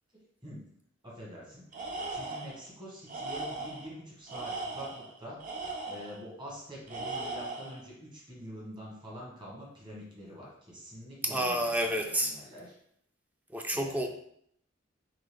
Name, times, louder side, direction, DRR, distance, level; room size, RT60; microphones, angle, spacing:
voice 1, 1.0-1.6 2.1-5.4 5.8-12.8 13.7-14.1, equal, 25° right, -4 dB, 1.4 m, -46 dB
Tools, 1.7-2.6 3.1-3.9 4.3-6.2 6.9-7.8, right 2 dB, 40° right, 0.7 m, -38 dB
voice 2, 11.2-12.3 13.5-14.1, right 1 dB, 10° right, 3 dB, 0.3 m, -29 dB
3.8 x 3.2 x 3.3 m, 0.70 s
head